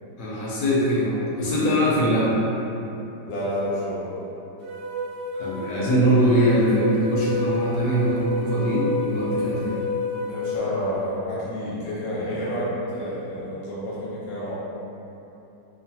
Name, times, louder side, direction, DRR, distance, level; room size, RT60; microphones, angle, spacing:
voice 1, 0.2-2.4 5.3-9.8, equal, 75° left, -7 dB, 1.2 m, -22 dB
voice 2, 3.2-4.1 10.3-14.6, equal, 55° left, -8 dB, 0.9 m, -29 dB
sound 1, 4.6-10.6, left 2 dB, 75° right, 1.1 m, -29 dB
3.0 x 2.3 x 2.7 m, 2.9 s
omnidirectional pair, 1.9 m